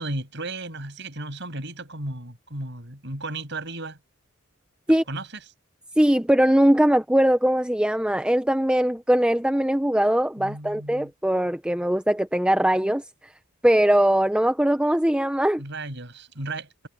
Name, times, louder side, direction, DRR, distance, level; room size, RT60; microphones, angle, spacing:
voice 1, 0.0-4.0 5.1-5.3 10.4-11.1 15.6-16.9, right 2 dB, 55° right, 7.3 m, -34 dB
voice 2, 6.0-13.0 13.6-15.6, right 1 dB, 5° right, 0.6 m, -21 dB
head